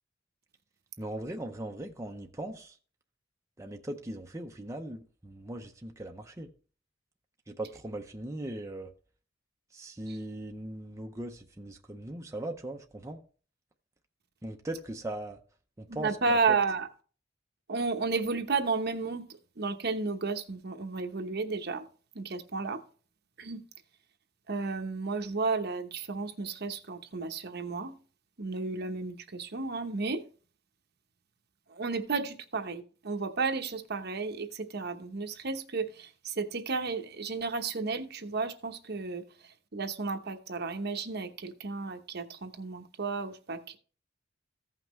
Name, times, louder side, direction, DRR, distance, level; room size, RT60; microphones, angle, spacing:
voice 1, 1.0-2.8 3.6-6.5 7.5-8.9 9.7-13.2 14.4-15.4 15.8-16.2 16.5-16.6, right 1 dB, 15° right, 0.6 m, -39 dB
voice 2, 15.9-16.9 17.7-19.3 19.6-21.9 22.1-22.8 23.4-23.6 24.5-27.9 28.4-30.2 31.7-43.8, right 4 dB, 55° right, 1.0 m, -33 dB
15.0 x 5.8 x 3.1 m
head